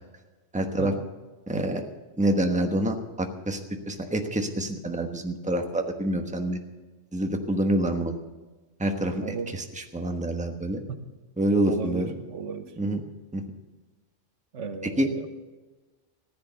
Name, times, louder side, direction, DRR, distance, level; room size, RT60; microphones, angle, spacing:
voice 1, 0.5-0.9 1.5-1.9 2.2-3.6 3.9-6.6 7.1-8.2 8.8-10.8 11.4-12.1 12.8-13.0 13.3-13.4 15.0-15.1, right 1 dB, 5° right, 4 dB, 1.1 m, -27 dB
voice 2, 9.2-9.5 10.9-11.0 11.7-12.7 14.5-15.3, right 5 dB, 85° right, 8 dB, 1.5 m, -35 dB
15.0 x 10.5 x 6.9 m, 1.2 s
omnidirectional pair, 1.2 m